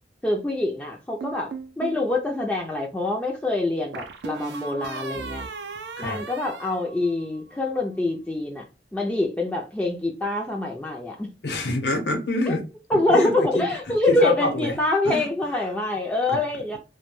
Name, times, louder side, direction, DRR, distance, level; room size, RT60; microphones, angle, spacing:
voice 1, 0.2-5.5 6.0-8.6 8.9-11.3 12.5-12.6 12.9-16.8, left 2 dB, 10° left, 0.3 m, -25 dB
sound 1, 1.2-2.0 3.9-7.5, right 4 dB, 75° right, 0.4 m, -36 dB
voice 2, 11.4-12.6 13.1-14.8 15.0-15.3 16.3-16.4, left 1 dB, 75° left, 0.8 m, -27 dB
2.2 x 2.1 x 3.0 m
head